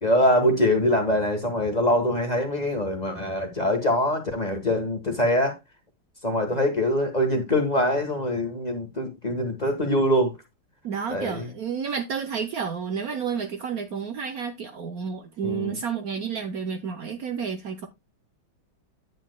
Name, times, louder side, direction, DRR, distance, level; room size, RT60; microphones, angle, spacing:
voice 1, 0.0-5.5 6.2-10.3 11.1-11.5 15.4-15.8, left 1 dB, 25° left, 1.3 m, -23 dB
voice 2, 10.8-17.9, right 6 dB, 60° right, 1.1 m, -31 dB
9.4 x 8.8 x 2.2 m
omnidirectional pair, 2.0 m